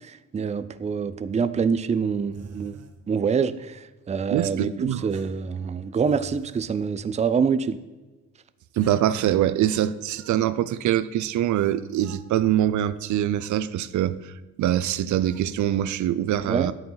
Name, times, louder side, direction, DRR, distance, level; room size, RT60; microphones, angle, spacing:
voice 1, 0.0-2.8 3.1-7.8 16.5-16.7, right 6 dB, 25° right, 0.5 m, -26 dB
sound 1, 2.3-3.0 5.1-6.7 8.8-10.4 11.5-12.3 13.4-13.7 15.2-15.5, right 4 dB, 55° right, 1.2 m, -47 dB
voice 2, 4.3-5.0 8.8-16.7, right 12 dB, 70° right, 0.6 m, -24 dB
11.0 x 8.7 x 3.9 m
cardioid pair, 90°, 30 cm